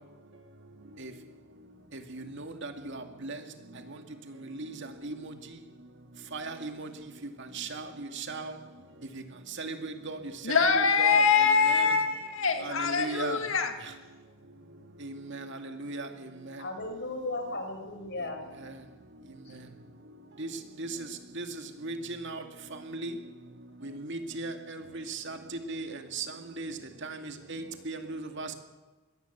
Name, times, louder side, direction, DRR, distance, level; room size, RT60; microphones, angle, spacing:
voice 1, 2.1-3.4 4.6-4.7 5.0-5.1 6.3-6.9 7.5-8.5 9.6-10.2 10.5-11.2 11.7-11.9 12.6-13.4 15.0-16.1 20.4-20.5 20.8-20.9 21.4-21.5 21.8-22.4 22.9-23.1 23.8-25.4 25.7-26.3 26.6-26.7 27.0-28.5, right 3 dB, 65° right, 6 dB, 2.3 m, -37 dB
voice 2, 10.4-13.7, left 5 dB, 75° left, 6 dB, 2.0 m, -24 dB
voice 3, 16.6-18.5 19.5-19.6, left 2 dB, 60° left, 5 dB, 5.3 m, -36 dB
21.5 x 17.5 x 8.2 m, 1.3 s
head